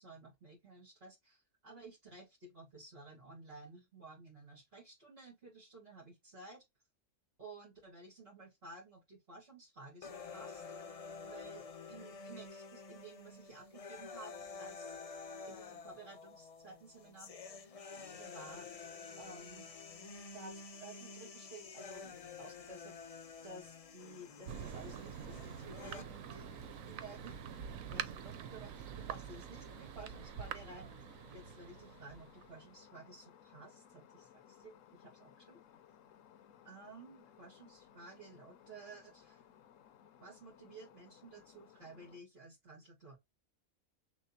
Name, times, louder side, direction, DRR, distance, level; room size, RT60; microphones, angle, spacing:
voice 1, 0.0-6.6 7.4-10.6 11.2-14.3 14.6-15.0 15.5-17.3 18.2-18.7 19.2-19.7 20.3-26.5 26.9-27.4 27.9-35.6 36.6-39.5 40.2-43.2, right 3 dB, 50° right, 2.1 m, -54 dB
sound 1, 10.0-26.0, left 4 dB, 45° left, 0.5 m, -49 dB
sound 2, 24.0-42.2, left 9 dB, 80° left, 1.0 m, -61 dB
Thunder, 24.5-32.8, right 8 dB, 85° right, 1.1 m, -46 dB
6.2 x 2.4 x 2.8 m
omnidirectional pair, 1.4 m